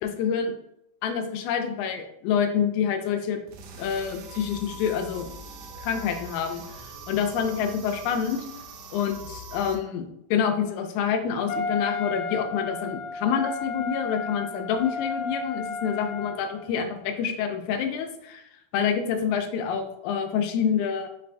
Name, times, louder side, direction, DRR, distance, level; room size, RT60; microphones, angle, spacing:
voice 1, 0.0-0.5 1.0-3.4 3.8-5.3 5.8-8.4 8.9-18.4 18.7-21.1, left 7 dB, 90° left, 5 dB, 2.0 m, -27 dB
sound 1, 3.5-9.8, right 2 dB, 80° right, 1.6 m, -42 dB
Wind instrument woodwind instrument, 11.5-16.7, left 3 dB, 70° left, 1.6 m, -33 dB
5.3 x 2.5 x 3.3 m, 0.80 s
omnidirectional pair, 3.3 m